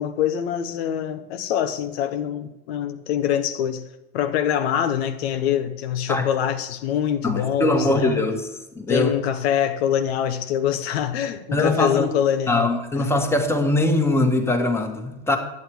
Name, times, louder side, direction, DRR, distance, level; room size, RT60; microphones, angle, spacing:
voice 1, 0.0-3.8 4.1-8.2 8.9-12.8, left 9 dB, 75° left, 0.9 m, -24 dB
voice 2, 7.2-8.5 8.7-9.1 11.5-12.1 12.5-15.4, left 2 dB, 10° left, 1.4 m, -21 dB
11.0 x 8.5 x 4.7 m
supercardioid pair, 110°, 31 cm